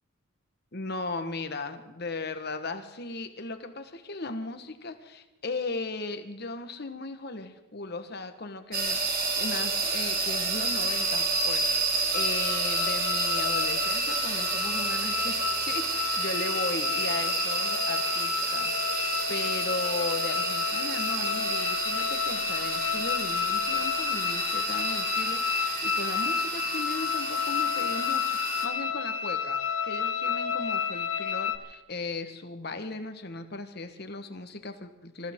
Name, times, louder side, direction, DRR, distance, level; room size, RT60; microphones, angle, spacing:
voice 1, 0.7-15.4 15.7-29.6 29.8-35.3, left 3 dB, 50° left, 8 dB, 1.3 m, -37 dB
sound 1, 8.7-28.7, right 3 dB, 45° right, 2.3 m, -30 dB
sound 2, 12.1-31.6, left 7 dB, 75° left, 1.3 m, -31 dB
26.5 x 14.5 x 3.7 m, 0.98 s
head